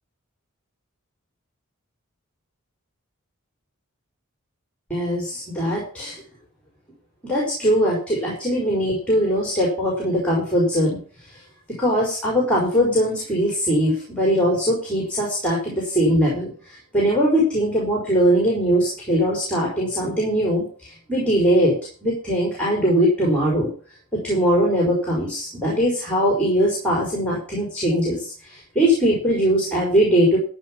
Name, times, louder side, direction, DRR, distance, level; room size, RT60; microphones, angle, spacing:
voice 1, 4.9-6.2 7.2-11.0 11.3-11.4 11.8-21.8 22.0-23.7 24.1-30.4, equal, 5° left, -3 dB, 4.7 m, -21 dB
14.0 x 5.5 x 7.3 m, 0.41 s
head